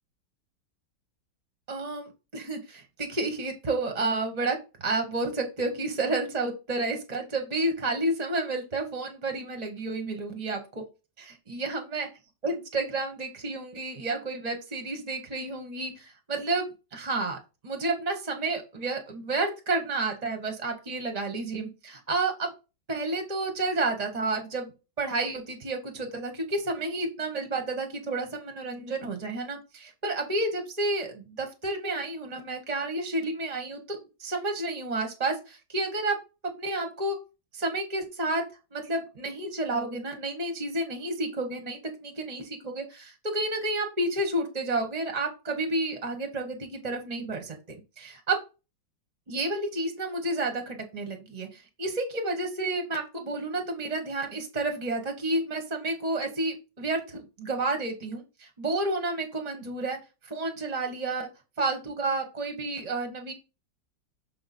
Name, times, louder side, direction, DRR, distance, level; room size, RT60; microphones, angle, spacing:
voice 1, 1.7-10.8 11.2-12.1 12.4-16.7 16.9-17.4 17.6-22.5 22.9-36.2 36.6-37.2 37.5-38.4 38.7-48.4 49.3-60.0 60.2-61.3 61.6-63.3, right 2 dB, 30° right, 4 dB, 0.9 m, -30 dB
6.7 x 4.1 x 4.2 m, 0.29 s
omnidirectional pair, 2.0 m